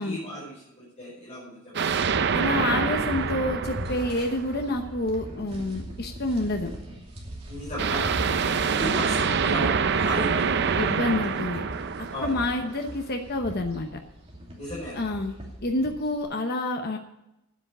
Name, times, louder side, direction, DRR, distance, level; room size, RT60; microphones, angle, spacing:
voice 1, 0.0-1.7 7.5-8.4 8.7-10.9 12.1-12.4 14.6-15.2, equal, 30° left, -7 dB, 5.0 m, -35 dB
sound 1, 1.7-4.9 7.8-13.0, right 6 dB, 55° right, 0.6 m, -26 dB
sound 2, 2.0-16.2, equal, 30° right, 2.7 m, -38 dB
voice 2, 2.3-6.7 10.8-11.6 12.0-13.9 15.0-17.0, left 2 dB, 50° left, 4 dB, 1.0 m, -28 dB
9.8 x 8.4 x 8.7 m, 0.88 s
head